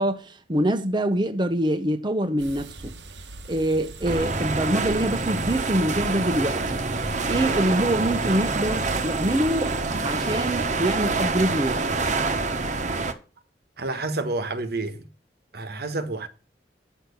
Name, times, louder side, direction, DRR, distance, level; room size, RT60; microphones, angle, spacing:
voice 1, 0.0-3.0 3.5-6.9 7.3-9.8 10.0-11.9, right 1 dB, 25° right, 0.9 m, -25 dB
sound 1, 2.4-9.8, right 3 dB, 85° right, 1.2 m, -40 dB
sound 2, 4.0-13.1, right 3 dB, 45° right, 1.2 m, -26 dB
voice 2, 13.8-15.1 15.5-16.3, right 2 dB, 60° right, 1.3 m, -29 dB
9.3 x 6.5 x 6.8 m
head